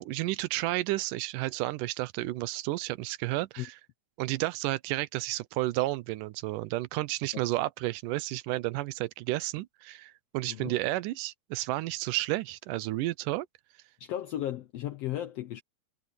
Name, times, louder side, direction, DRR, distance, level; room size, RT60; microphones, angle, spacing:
voice 1, 0.0-3.8 4.2-13.5, right 18 dB, 85° right, 2.3 m, -31 dB
voice 2, 14.0-15.6, left 12 dB, 75° left, 1.4 m, -35 dB
omnidirectional pair, 3.7 m